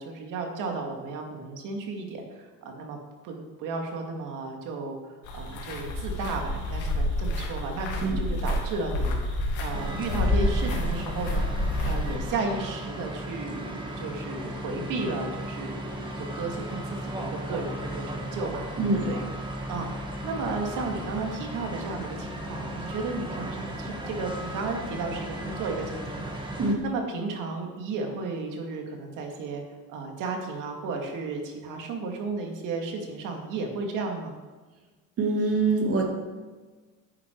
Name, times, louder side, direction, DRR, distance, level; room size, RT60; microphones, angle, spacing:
voice 1, 0.0-3.0 3.2-11.4 11.8-19.2 19.7-19.9 20.2-26.3 26.8-29.6 29.9-34.3, right 3 dB, 75° right, 3 dB, 2.3 m, -34 dB
sound 1, 5.2-12.2, left 1 dB, 70° left, 2.6 m, -28 dB
sound 2, 9.7-26.7, right 1 dB, 15° right, 1.8 m, -36 dB
voice 2, 35.2-36.0, right 3 dB, 45° right, 1 dB, 2.3 m, -24 dB
10.0 x 8.9 x 4.6 m, 1.3 s
cardioid pair, 125°, 31 cm